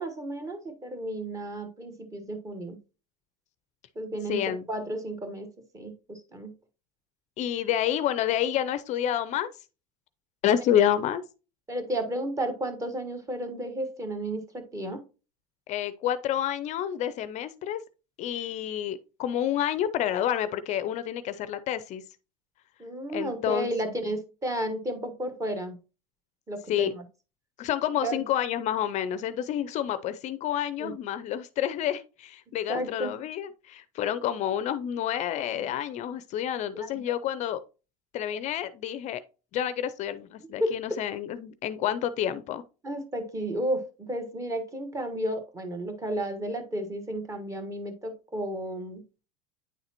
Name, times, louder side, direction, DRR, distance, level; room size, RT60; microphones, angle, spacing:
voice 1, 0.0-2.8 3.9-4.4 4.7-5.5 5.7-6.5 11.7-15.0 22.8-25.8 26.5-27.0 28.0-28.2 30.8-30.9 32.7-33.1 35.5-35.6 36.7-36.9 40.6-41.0 42.8-49.0, right 1 dB, 15° right, 1.3 m, -32 dB
voice 2, 4.3-4.7 7.4-9.5 10.4-11.2 15.7-17.8 18.2-22.0 23.1-23.9 26.7-26.9 27.6-37.6 38.1-39.2 39.5-42.6, left 10 dB, 40° left, 0.5 m, -29 dB
9.3 x 4.0 x 2.9 m
supercardioid pair, 120°, 18 cm